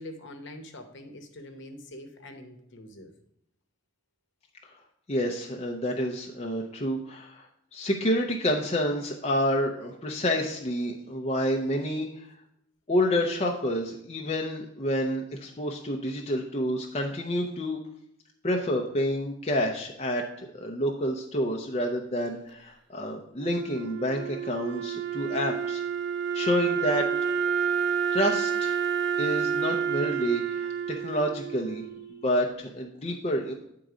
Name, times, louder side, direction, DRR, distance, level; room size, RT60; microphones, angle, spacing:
voice 1, 0.0-3.1, left 1 dB, 60° left, 6 dB, 1.0 m, -44 dB
voice 2, 5.1-7.5 7.7-12.3 12.9-17.8 18.4-25.8 26.3-27.1 28.1-28.8 29.2-31.8 32.1-33.5, equal, 30° left, 1 dB, 0.6 m, -28 dB
Wind instrument woodwind instrument, 23.4-32.4, right 7 dB, 55° right, 0.5 m, -29 dB
9.2 x 3.8 x 4.9 m, 0.76 s
head